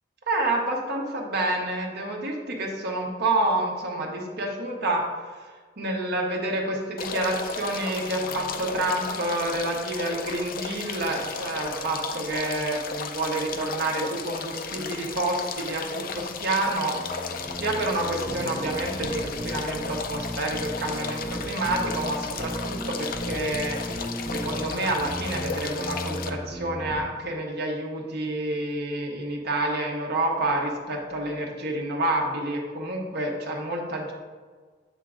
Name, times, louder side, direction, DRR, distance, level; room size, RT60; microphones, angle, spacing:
voice 1, 0.3-5.5 5.8-17.3 17.6-34.1, right 2 dB, 60° right, 0 dB, 1.1 m, -28 dB
sound 1, 7.0-26.3, left 5 dB, 50° left, 0.4 m, -35 dB
sound 2, 16.9-27.0, equal, 15° right, 0.7 m, -36 dB
8.2 x 3.6 x 3.7 m, 1.5 s
head